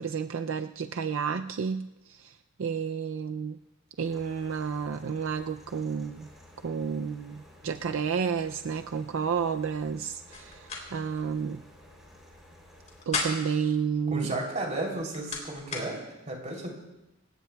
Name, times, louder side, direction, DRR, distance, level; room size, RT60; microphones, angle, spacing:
voice 1, 0.0-3.6 4.0-6.3 6.6-11.6 13.1-14.3, right 6 dB, 75° right, 8 dB, 0.4 m, -31 dB
sound 1, 4.0-13.0, left 1 dB, ahead, 3.4 m, -54 dB
sound 2, 10.3-10.8 11.2-11.3 12.7-13.6 14.7-15.9, left 3 dB, 35° left, 3.3 m, -34 dB
voice 2, 14.1-16.7, right 2 dB, 35° right, 0 dB, 3.2 m, -34 dB
27.0 x 16.5 x 2.3 m, 0.99 s
head